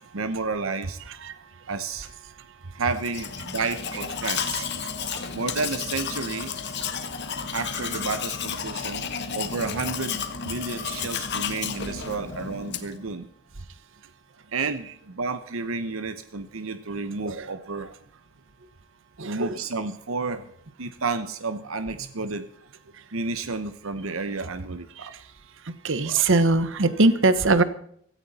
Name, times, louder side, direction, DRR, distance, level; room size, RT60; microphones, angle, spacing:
voice 1, 0.1-1.0 1.7-2.1 2.7-4.7 5.3-6.5 7.5-9.1 9.3-13.3 14.5-17.9 19.2-20.5 20.8-22.5 23.1-25.1 26.1-26.2, right 4 dB, 85° right, 10 dB, 1.0 m, -31 dB
Domestic sounds home sounds, 2.9-13.0, left 7 dB, 55° left, 1.5 m, -32 dB
voice 2, 19.2-19.6 25.0-25.2 25.6-27.6, right 3 dB, 65° right, 13 dB, 1.2 m, -22 dB
16.5 x 14.5 x 4.3 m, 0.64 s
head